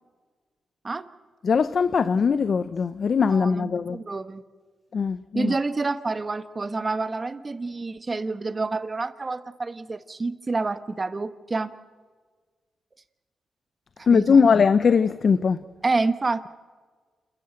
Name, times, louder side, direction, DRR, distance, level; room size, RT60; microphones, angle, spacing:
voice 1, 1.4-4.0 4.9-5.5 14.1-15.6, left 5 dB, 55° left, 0.7 m, -20 dB
voice 2, 3.3-4.4 5.3-11.7 14.1-14.4 15.8-16.5, right 3 dB, 35° right, 1.2 m, -28 dB
28.5 x 14.0 x 7.7 m
cardioid pair, 65°, 0 cm